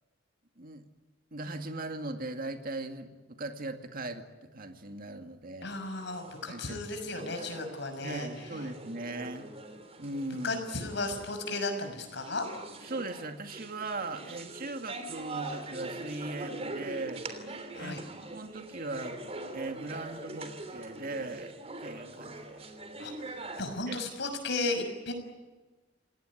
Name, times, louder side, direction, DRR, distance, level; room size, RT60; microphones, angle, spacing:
voice 1, 1.3-5.7 6.5-6.8 7.2-7.3 8.0-9.5 10.0-10.6 12.8-17.2 17.7-19.2 19.5-21.5 21.8-22.6 23.9-24.0, right 2 dB, 50° right, 6 dB, 2.2 m, -39 dB
voice 2, 5.6-8.3 10.4-12.4 17.7-18.0 23.0-25.1, left 2 dB, 65° left, 6 dB, 6.1 m, -34 dB
sound 1, 5.9-23.6, right 2 dB, 35° right, 3.2 m, -43 dB
27.5 x 18.5 x 9.8 m, 1.3 s
head